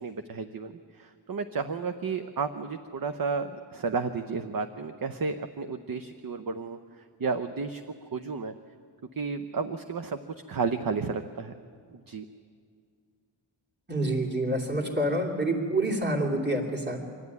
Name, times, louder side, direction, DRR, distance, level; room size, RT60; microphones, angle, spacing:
voice 1, 0.0-8.5 9.1-10.2 10.5-11.6 11.9-12.3, right 5 dB, 45° right, 8 dB, 0.9 m, -32 dB
voice 2, 13.9-17.0, right 1 dB, 20° right, 0 dB, 3.0 m, -27 dB
25.5 x 12.5 x 9.6 m, 2.2 s
wide cardioid pair, 80°, 47 cm